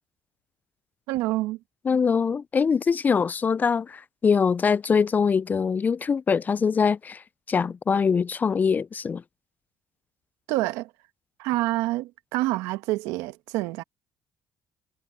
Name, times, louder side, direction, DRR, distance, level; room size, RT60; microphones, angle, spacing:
voice 1, 1.1-1.6 10.5-10.9 11.4-13.8, right 18 dB, 85° right, 1.3 m, -27 dB
voice 2, 1.9-7.2 7.5-9.2, left 6 dB, 35° left, 0.3 m, -23 dB
supercardioid pair, 75°, 5 cm